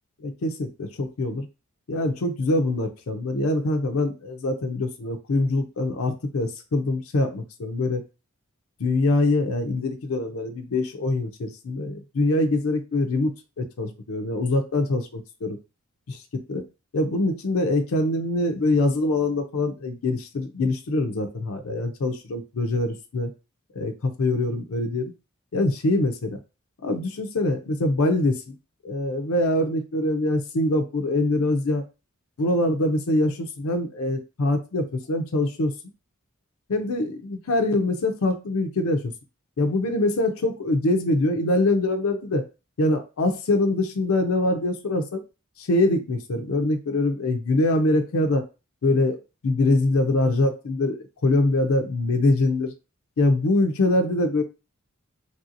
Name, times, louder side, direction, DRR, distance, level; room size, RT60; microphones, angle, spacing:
voice 1, 0.2-1.5 1.9-8.0 8.8-13.3 13.6-15.6 16.1-16.6 16.9-23.3 23.7-25.1 25.5-26.4 26.8-28.5 28.8-31.8 32.4-35.7 36.7-39.1 39.6-42.5 42.8-45.2 45.6-48.5 48.8-49.2 49.4-52.7 53.2-54.4, left 2 dB, 70° left, 6 dB, 0.5 m, -24 dB
3.3 x 2.7 x 2.5 m, 0.29 s
head